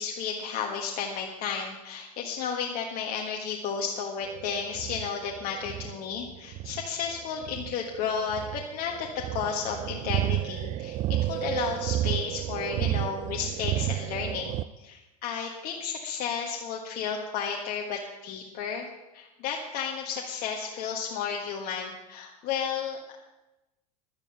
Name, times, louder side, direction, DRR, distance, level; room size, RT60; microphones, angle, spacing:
voice 1, 0.0-18.9 19.1-23.2, left 6 dB, 50° left, 1 dB, 1.5 m, -33 dB
sound 1, 4.2-14.6, right 13 dB, 40° right, 0.4 m, -32 dB
11.5 x 9.0 x 6.9 m, 1.0 s
hypercardioid pair, 105°, 20 cm